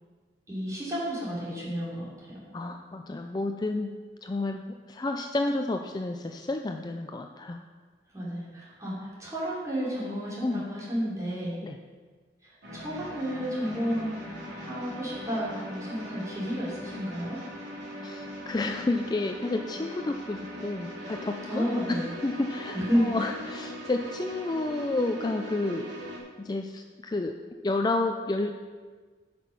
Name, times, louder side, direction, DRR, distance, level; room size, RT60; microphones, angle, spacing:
voice 1, 0.5-2.4 8.1-11.6 12.4-17.4 21.5-22.1 22.7-23.3, equal, 20° right, -8 dB, 3.2 m, -31 dB
voice 2, 2.5-3.9 4.2-4.6 4.9-7.6 10.4-10.6 11.6-11.8 18.0-25.9 26.4-27.3 27.6-28.5, left 2 dB, 25° left, 5 dB, 0.3 m, -30 dB
sound 1, 12.6-26.2, equal, 85° right, 2.8 m, -40 dB
10.5 x 6.0 x 5.5 m, 1.5 s
head